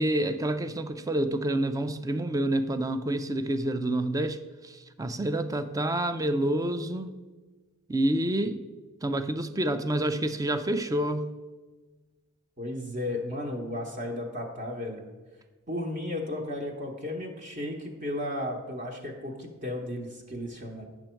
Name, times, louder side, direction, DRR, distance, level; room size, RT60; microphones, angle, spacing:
voice 1, 0.0-4.4 4.6-7.1 7.9-8.6 9.0-11.3, right 1 dB, 15° right, 10 dB, 0.4 m, -28 dB
voice 2, 12.6-15.0 15.7-20.9, left 1 dB, 35° right, 0 dB, 1.0 m, -34 dB
9.0 x 6.1 x 4.4 m, 1.3 s
head